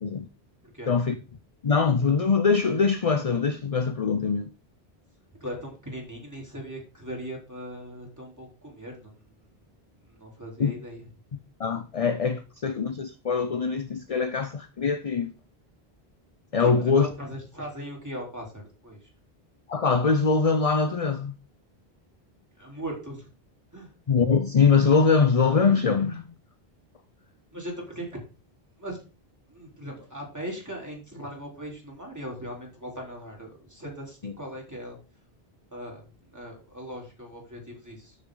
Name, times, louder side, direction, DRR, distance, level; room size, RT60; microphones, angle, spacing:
voice 1, 0.9-1.2 1.6-4.5 10.6-10.7 11.6-15.3 16.5-17.1 19.7-21.3 24.1-26.3 34.2-34.3, left 5 dB, 40° left, 0.7 m, -23 dB
voice 2, 5.4-9.5 10.0-11.1 16.6-19.1 22.6-23.3 23.7-23.9 27.5-28.2 28.8-29.0 29.5-35.0 35.7-36.0 36.3-38.2, equal, 15° right, 3.8 m, -39 dB
12.5 x 6.5 x 3.9 m
omnidirectional pair, 1.0 m